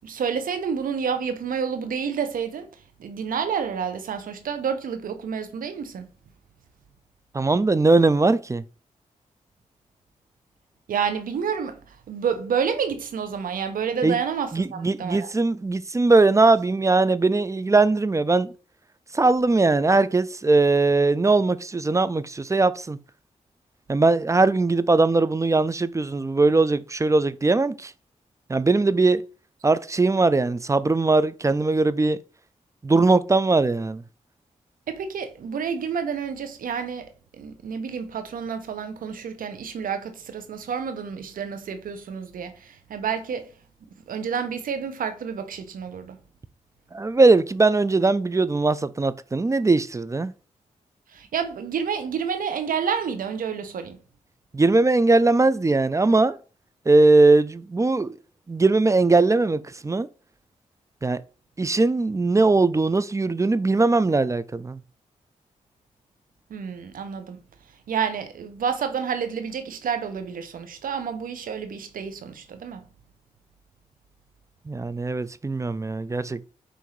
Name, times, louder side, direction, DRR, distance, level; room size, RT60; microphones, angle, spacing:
voice 1, 0.0-2.7 3.0-6.1 10.9-15.3 34.9-37.1 37.4-43.5 44.1-46.2 51.1-54.0 66.5-67.4 67.9-72.8, right 7 dB, 75° right, 0.7 m, -29 dB
voice 2, 7.3-8.6 14.0-14.2 14.5-18.5 19.1-23.0 23.9-27.9 28.5-29.2 29.6-32.2 32.8-34.0 46.9-50.3 54.5-56.4 56.9-58.2 58.5-60.1 61.0-61.2 61.6-64.8 74.7-76.5, right 3 dB, 20° right, 0.4 m, -20 dB
5.7 x 2.6 x 3.1 m
supercardioid pair, 40°, 14 cm